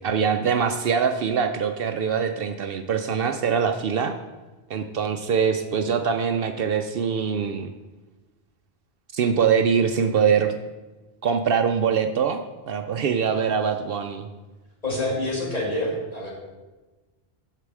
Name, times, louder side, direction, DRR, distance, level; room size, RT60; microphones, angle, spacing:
voice 1, 0.0-4.1 4.7-7.7 9.1-10.6 11.2-12.4 12.7-14.3, right 6 dB, 65° right, 7 dB, 0.7 m, -23 dB
voice 2, 14.8-16.3, left 1 dB, 35° left, -4 dB, 2.5 m, -27 dB
8.4 x 6.7 x 4.8 m, 1.2 s
omnidirectional pair, 1.1 m